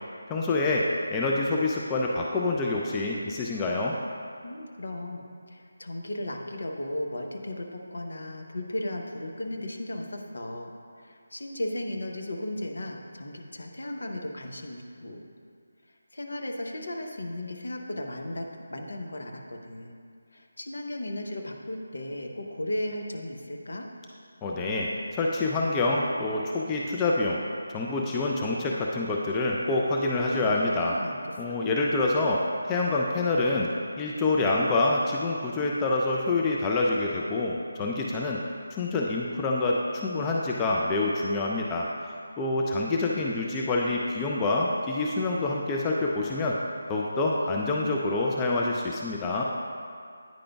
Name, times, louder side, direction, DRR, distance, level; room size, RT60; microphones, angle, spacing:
voice 1, 0.3-3.9 24.4-27.4 27.7-31.0 31.4-33.7 34.0-38.4 38.7-41.9 42.4-46.6 46.9-49.4, left 2 dB, 15° left, -2 dB, 0.4 m, -26 dB
voice 2, 4.4-10.7 11.0-15.3 16.1-20.0 20.3-23.9 30.3-31.6 47.5-47.9, left 1 dB, 65° left, 2 dB, 0.7 m, -36 dB
9.2 x 4.9 x 2.3 m, 2.3 s
figure-of-eight pair, 155°, 0 cm